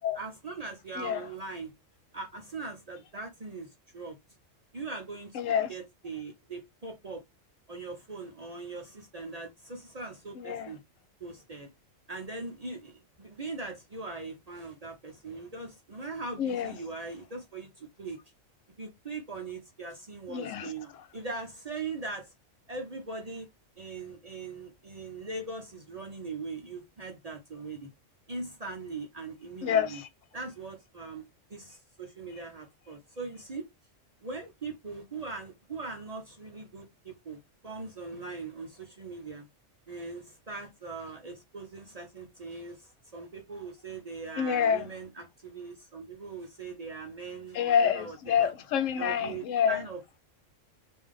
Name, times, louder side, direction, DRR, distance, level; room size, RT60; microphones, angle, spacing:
voice 1, 0.1-1.7 2.1-4.2 4.7-7.2 7.7-10.8 11.2-11.7 12.1-18.2 18.8-22.3 22.7-23.5 23.8-27.9 28.3-30.0 30.3-33.6 34.2-37.4 37.6-39.5 39.9-48.5 49.0-50.2, right 3 dB, 40° right, 0.6 m, -40 dB
voice 2, 5.3-5.7 10.4-10.7 16.4-16.7 20.3-20.7 29.6-30.0 44.4-44.9 47.5-49.8, left 8 dB, 80° left, 1.0 m, -27 dB
3.3 x 2.6 x 3.6 m
omnidirectional pair, 1.3 m